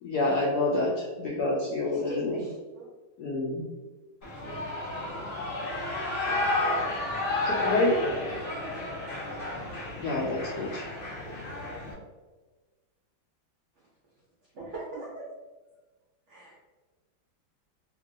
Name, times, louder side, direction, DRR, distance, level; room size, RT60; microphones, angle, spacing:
voice 1, 0.0-2.4 3.2-3.7 7.4-8.0 10.0-10.9, left 2 dB, 75° left, -5 dB, 0.9 m, -28 dB
voice 2, 1.8-2.9 13.8-13.9 14.5-15.3 16.3-16.7, right 2 dB, 75° right, -5 dB, 0.6 m, -41 dB
Shout / Cheering, 4.2-11.9, left 2 dB, 50° left, 1.2 m, -31 dB
voice 3, 4.2-5.4 6.2-8.0, right 1 dB, 10° left, -9 dB, 1.0 m, -49 dB
2.9 x 2.7 x 2.6 m, 1.2 s
omnidirectional pair, 2.1 m